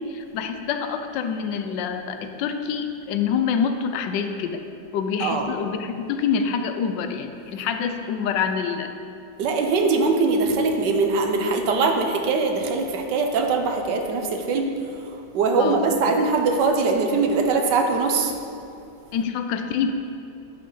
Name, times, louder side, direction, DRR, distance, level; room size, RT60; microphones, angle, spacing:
voice 1, 0.0-4.6 4.9-8.9 15.6-15.9 19.1-19.9, left 6 dB, 80° left, 7 dB, 1.3 m, -26 dB
voice 2, 9.4-14.7 15.3-18.3, right 4 dB, 75° right, 4 dB, 1.4 m, -22 dB
11.0 x 5.7 x 3.9 m, 2.6 s
omnidirectional pair, 1.9 m